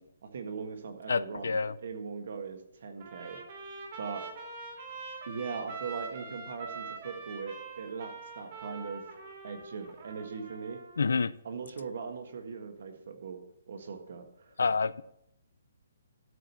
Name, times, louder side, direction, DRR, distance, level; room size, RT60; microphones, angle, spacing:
voice 1, 0.0-3.4 4.0-4.2 5.3-9.0 9.4-10.8 11.4-13.4 13.7-14.5, right 5 dB, 45° right, 6 dB, 1.5 m, -40 dB
voice 2, 1.1-1.7 11.0-11.3 14.6-15.0, left 4 dB, 85° left, 18 dB, 0.5 m, -28 dB
Trumpet, 3.0-11.1, right 4 dB, 30° right, 2.0 m, -44 dB
12.5 x 4.9 x 6.9 m, 0.79 s
hypercardioid pair, 180°, 0 cm